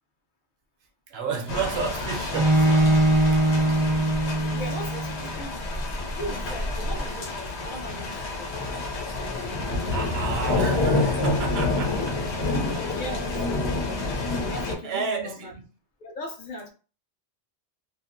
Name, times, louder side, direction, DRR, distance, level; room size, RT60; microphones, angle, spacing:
voice 1, 1.1-3.6 5.2-5.6 9.9-12.5 12.7-13.0 14.8-15.6, right 5 dB, 75° right, 0.8 m, -33 dB
sound 1, 1.5-14.8, left 2 dB, 85° left, 1.0 m, -28 dB
Bowed string instrument, 2.3-5.3, right 1 dB, 40° right, 0.5 m, -21 dB
voice 2, 4.5-5.7 6.1-8.8 12.4-13.4 14.3-15.6 16.0-16.7, equal, 55° left, 0.7 m, -38 dB
2.7 x 2.4 x 2.5 m
omnidirectional pair, 1.1 m